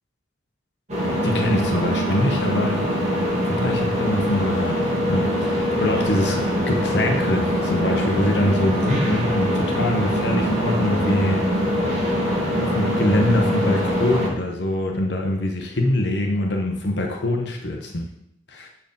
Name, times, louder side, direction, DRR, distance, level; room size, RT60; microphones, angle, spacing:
sound 1, 0.9-14.3, equal, 35° right, 2.5 m, -23 dB
voice 1, 1.2-2.9 3.5-6.4 6.7-11.4 12.6-18.1 18.5-18.7, left 1 dB, 60° left, 2 dB, 0.9 m, -24 dB
7.6 x 4.7 x 5.3 m, 0.78 s
head